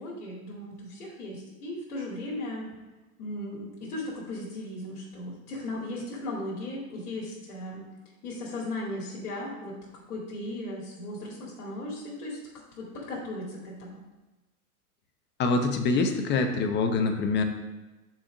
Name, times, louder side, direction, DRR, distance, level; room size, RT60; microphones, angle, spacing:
voice 1, 0.0-2.7 3.2-7.8 8.2-9.8 10.1-12.4 12.7-14.0, left 1 dB, 75° left, -4 dB, 2.3 m, -37 dB
voice 2, 15.4-17.4, left 3 dB, 25° left, 5 dB, 0.8 m, -25 dB
6.1 x 4.3 x 6.0 m, 1.2 s
hypercardioid pair, 125°, 44 cm